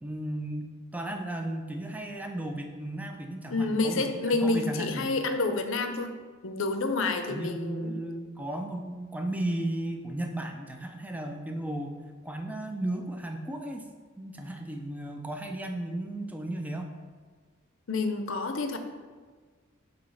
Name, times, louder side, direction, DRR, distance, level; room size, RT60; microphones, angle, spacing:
voice 1, 0.0-4.0 4.3-5.1 7.3-12.0 12.2-13.9 14.2-16.9, right 1 dB, 5° right, 4 dB, 0.5 m, -35 dB
voice 2, 3.5-6.1 6.4-8.0 17.9-18.8, left 3 dB, 65° left, 6 dB, 0.6 m, -28 dB
7.8 x 3.0 x 5.6 m, 1.5 s
head